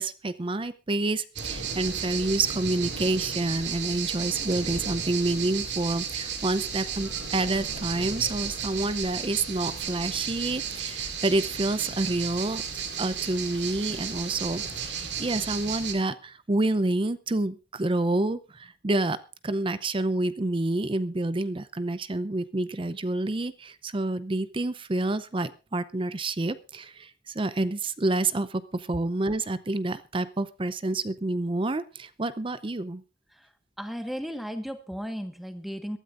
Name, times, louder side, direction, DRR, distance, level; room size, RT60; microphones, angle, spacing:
voice 1, 0.0-12.6 13.0-33.0, right 2 dB, 30° right, 14 dB, 0.6 m, -28 dB
sound 1, 1.4-15.9, right 6 dB, 80° right, 2.3 m, -33 dB
voice 2, 33.8-36.0, equal, ahead, 7 dB, 1.4 m, -35 dB
22.0 x 13.0 x 2.5 m, 0.30 s
head